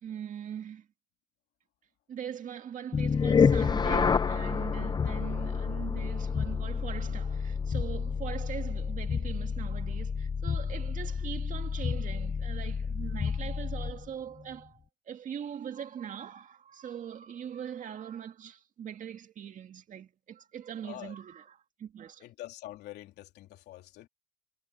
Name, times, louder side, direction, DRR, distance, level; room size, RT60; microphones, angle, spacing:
voice 1, 0.0-0.9 2.1-14.8 15.1-22.2, right 9 dB, 50° right, 2.0 m, -41 dB
sound 1, 2.9-14.1, left 6 dB, 25° left, 0.6 m, -29 dB
voice 2, 20.8-21.1 22.2-24.1, left 14 dB, 80° left, 3.1 m, -45 dB
cardioid pair, 110°, 17 cm